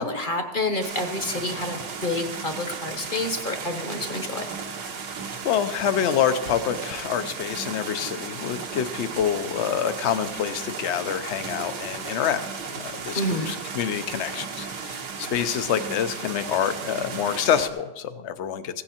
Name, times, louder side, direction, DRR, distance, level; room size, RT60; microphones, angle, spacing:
voice 1, 0.0-4.5 13.1-13.5, left 2 dB, 35° left, 6 dB, 1.0 m, -28 dB
sound 1, 0.8-17.7, right 5 dB, 70° right, 1.7 m, -35 dB
voice 2, 5.4-12.4 12.7-18.8, left 9 dB, 60° left, 11 dB, 0.7 m, -27 dB
16.0 x 9.8 x 4.3 m, 1.1 s
omnidirectional pair, 1.9 m